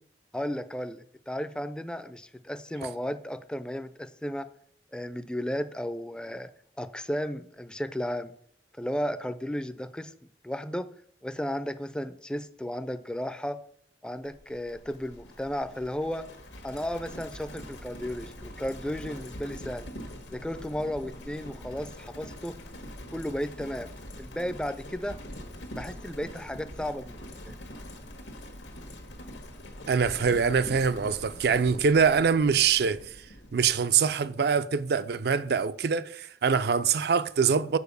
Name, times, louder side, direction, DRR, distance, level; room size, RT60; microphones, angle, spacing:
voice 1, 0.3-4.5 4.9-6.5 6.8-8.3 8.8-10.1 10.4-10.9 11.2-13.6 14.0-16.3 16.6-19.9 20.3-22.6 23.1-25.2 25.8-27.6, equal, 5° left, 0.4 m, -34 dB
Livestock farm animals working animals, 14.2-33.9, equal, 85° left, 1.4 m, -44 dB
voice 2, 29.9-33.0 33.5-37.8, right 6 dB, 60° right, 0.4 m, -24 dB
7.0 x 4.7 x 6.7 m
head